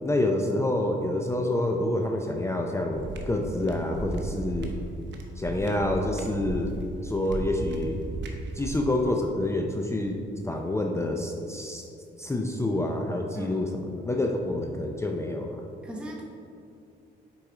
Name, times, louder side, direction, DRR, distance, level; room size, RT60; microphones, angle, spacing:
voice 1, 0.0-4.7 5.4-6.7 7.0-8.0 8.5-10.2 10.4-11.8 12.2-15.6, left 1 dB, 15° left, 2 dB, 0.5 m, -27 dB
sound 1, 2.9-9.1, right 2 dB, 65° right, 0.9 m, -36 dB
voice 2, 13.3-13.8 15.8-16.2, right 1 dB, 5° right, -2 dB, 0.9 m, -39 dB
6.5 x 4.7 x 3.9 m, 2.5 s
cardioid pair, 90°, 20 cm